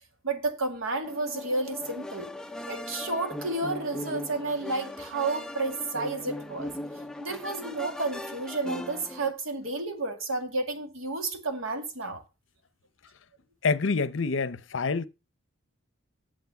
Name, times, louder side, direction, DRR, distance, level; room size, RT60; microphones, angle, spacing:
voice 1, 0.2-2.3 2.7-6.7 7.2-12.2, right 3 dB, 75° right, 2.1 m, -31 dB
sound 1, 1.0-9.3, left 1 dB, 5° left, 0.5 m, -39 dB
voice 2, 13.6-15.1, left 4 dB, 60° left, 0.7 m, -27 dB
9.4 x 7.6 x 5.8 m
head